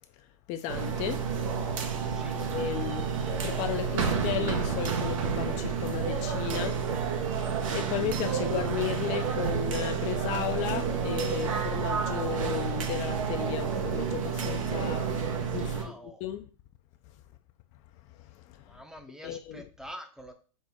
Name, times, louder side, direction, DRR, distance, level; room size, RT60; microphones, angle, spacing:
voice 1, 0.5-1.3 2.3-6.8 7.4-16.5 18.2-18.8 19.2-19.7, left 10 dB, 40° left, 0.4 m, -35 dB
sound 1, 0.7-15.8, right 6 dB, 75° right, 0.8 m, -30 dB
voice 2, 2.1-2.4 15.7-16.2 18.7-20.3, equal, 5° right, 0.6 m, -46 dB
5.2 x 2.1 x 3.5 m
hypercardioid pair, 100°, 17 cm